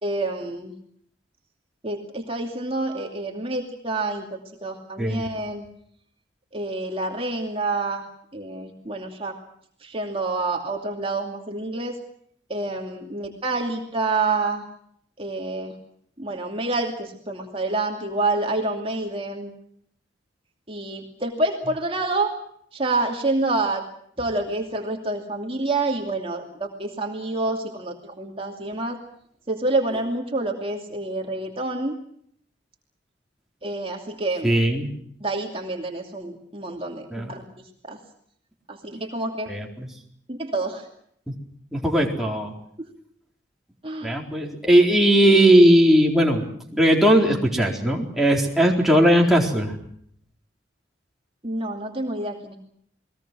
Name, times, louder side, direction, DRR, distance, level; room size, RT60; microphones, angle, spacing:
voice 1, 0.0-0.7 1.8-5.7 6.5-8.1 8.3-9.4 9.8-12.0 12.5-14.6 15.2-15.7 16.2-19.5 20.7-22.3 22.7-23.8 24.2-29.0 29.5-32.0 33.6-34.5 35.2-38.0 38.7-39.5 40.3-40.9 42.8-42.9 43.8-44.2 51.4-52.6, right 2 dB, 30° right, 2 dB, 2.6 m, -28 dB
voice 2, 34.4-34.9 37.1-37.3 39.5-39.9 41.7-42.5 44.0-49.7, right 1 dB, ahead, -1 dB, 4.2 m, -18 dB
30.0 x 21.0 x 6.2 m, 0.66 s
head